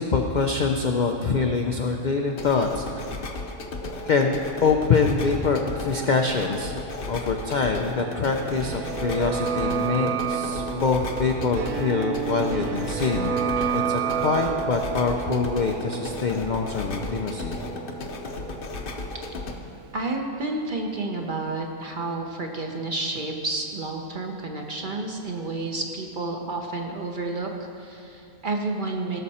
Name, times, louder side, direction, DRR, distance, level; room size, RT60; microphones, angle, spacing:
voice 1, 0.0-3.2 4.0-6.7 7.1-13.4 13.7-17.6, left 4 dB, 60° left, 3 dB, 0.4 m, -25 dB
sound 1, 2.3-19.5, left 2 dB, 45° left, 0.9 m, -35 dB
sound 2, 8.0-19.7 19.9-20.0, right 7 dB, 80° right, 1.1 m, -30 dB
voice 2, 19.9-27.5 27.8-29.2, right 2 dB, 45° right, 2 dB, 0.8 m, -30 dB
16.5 x 6.6 x 4.2 m, 2.6 s
omnidirectional pair, 1.5 m